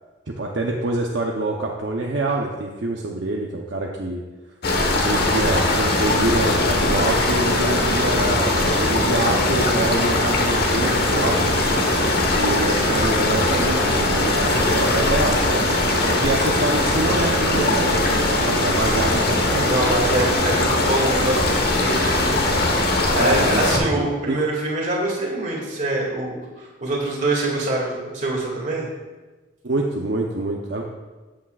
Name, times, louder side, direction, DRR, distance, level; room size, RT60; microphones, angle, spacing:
voice 1, 0.3-4.2 4.9-12.1 12.3-19.7 23.2-24.4 29.6-30.8, right 2 dB, 65° right, -1 dB, 0.8 m, -26 dB
sound 1, 4.6-23.8, left 2 dB, 55° left, 1.2 m, -20 dB
voice 2, 19.6-22.4 22.7-28.9, right 2 dB, 40° right, -2 dB, 2.3 m, -25 dB
13.5 x 8.6 x 2.4 m, 1.2 s
head